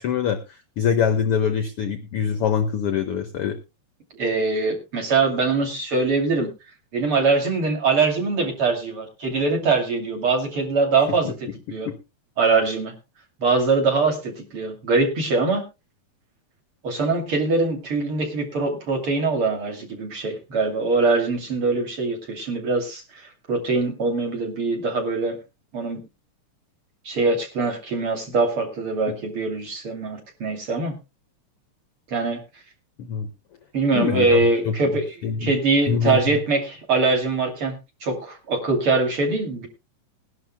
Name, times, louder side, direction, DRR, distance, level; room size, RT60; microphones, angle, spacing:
voice 1, 0.0-3.6 11.2-11.3 11.7-12.0 33.0-33.3 33.9-34.7 35.2-35.5 35.9-36.2, left 7 dB, 65° left, 8 dB, 1.4 m, -24 dB
voice 2, 4.2-6.5 6.9-11.3 11.7-11.9 12.4-12.9 13.4-15.6 16.8-23.2 23.5-25.4 25.7-26.0 27.0-30.9 32.1-32.4 33.7-35.0 35.4-39.7, right 3 dB, 45° right, 3 dB, 3.5 m, -23 dB
21.0 x 11.5 x 2.2 m, 0.27 s
omnidirectional pair, 3.6 m